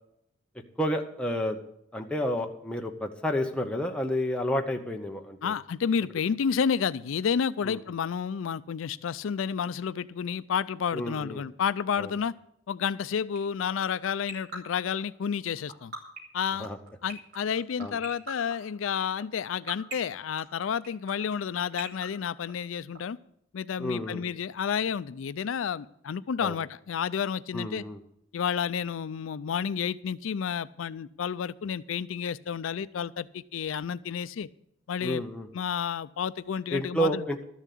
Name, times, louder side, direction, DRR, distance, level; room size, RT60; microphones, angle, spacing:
voice 1, 0.8-1.6 1.9-5.5 7.6-7.8 10.9-11.4 12.0-12.1 16.6-16.8 17.8-18.0 23.8-24.2 26.4-26.5 27.5-28.0 35.0-35.5 36.7-37.4, equal, 5° left, 2 dB, 0.9 m, -30 dB
voice 2, 5.4-12.3 12.7-15.9 16.3-16.7 17.0-23.2 23.5-27.8 28.3-34.5 34.9-35.2 35.5-37.4, left 7 dB, 85° left, 16 dB, 0.4 m, -30 dB
sound 1, 13.4-23.0, right 3 dB, 55° right, 3.8 m, -39 dB
13.0 x 7.2 x 8.4 m, 0.73 s
head